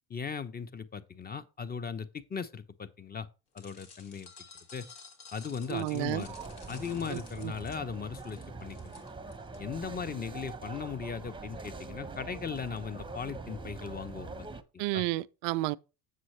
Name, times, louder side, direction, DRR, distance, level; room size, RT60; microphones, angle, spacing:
voice 1, 0.1-3.3 3.5-4.3 4.7-4.9 5.3-6.3 6.7-9.0 9.6-14.5 14.9-15.0, left 6 dB, 20° left, 0.8 m, -38 dB
sound 1, 3.6-9.6, left 5 dB, 65° left, 2.1 m, -52 dB
sound 2, 5.4-14.6, right 3 dB, 10° right, 0.8 m, -44 dB
voice 2, 5.7-6.3 7.1-7.5 14.8-15.8, right 18 dB, 70° right, 0.5 m, -31 dB
7.6 x 6.5 x 3.2 m
hypercardioid pair, 75°, 43 cm